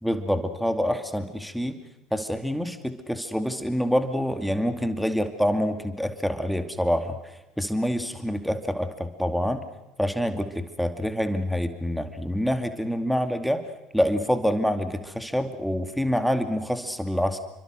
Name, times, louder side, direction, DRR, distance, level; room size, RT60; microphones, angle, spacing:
voice 1, 0.0-1.8 2.1-9.6 10.0-13.6 13.9-17.4, equal, ahead, 7 dB, 2.5 m, -26 dB
29.0 x 24.5 x 6.5 m, 1.0 s
figure-of-eight pair, 65°, 0 cm